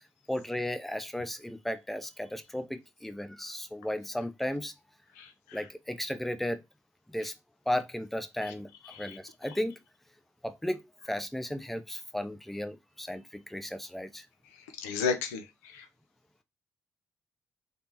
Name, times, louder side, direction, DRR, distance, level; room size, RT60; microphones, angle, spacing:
voice 1, 0.3-4.7 5.5-6.6 7.1-7.3 7.7-9.8 10.4-14.3, left 1 dB, ahead, 0.5 m, -35 dB
voice 2, 14.8-15.4 15.7-15.8, left 5 dB, 90° left, 0.4 m, -32 dB
3.3 x 2.0 x 2.8 m
hypercardioid pair, 45°, 8 cm